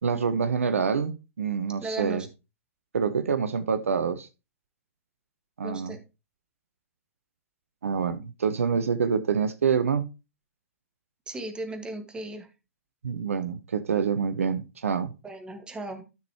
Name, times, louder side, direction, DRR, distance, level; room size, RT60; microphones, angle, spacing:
voice 1, 0.0-2.2 2.9-4.3 5.6-6.0 7.8-10.1 13.0-15.1, right 6 dB, 70° right, 0.8 m, -26 dB
voice 2, 1.8-2.3 5.6-6.0 11.3-12.5 15.2-16.0, right 2 dB, 10° right, 1.6 m, -36 dB
13.0 x 6.1 x 2.9 m
figure-of-eight pair, 105°, 8 cm